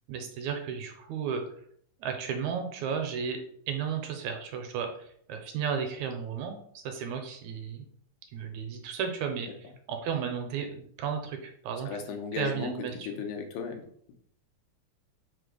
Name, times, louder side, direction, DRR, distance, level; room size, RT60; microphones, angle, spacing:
voice 1, 0.1-1.4 2.0-7.9 8.3-12.0 12.3-13.1, right 7 dB, 80° right, 5 dB, 1.8 m, -34 dB
voice 2, 11.9-12.7 13.1-13.8, left 6 dB, 90° left, 4 dB, 2.2 m, -35 dB
5.0 x 2.1 x 4.8 m, 0.63 s
omnidirectional pair, 3.5 m